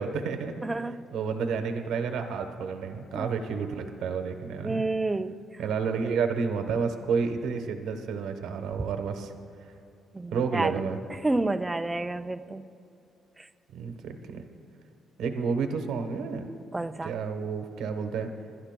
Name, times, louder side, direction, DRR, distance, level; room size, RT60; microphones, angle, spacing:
voice 1, 0.0-0.6 1.1-4.8 5.6-9.3 10.3-11.0 13.7-14.4 15.2-16.5 17.0-18.3, right 5 dB, 85° right, 1.0 m, -30 dB
voice 2, 0.6-1.0 3.1-3.3 4.6-5.4 8.8-8.9 10.1-10.7 11.1-12.6 13.4-13.5 16.7-17.1, right 2 dB, 15° right, 0.5 m, -29 dB
27.0 x 11.5 x 2.2 m
cardioid pair, 90°, 0 cm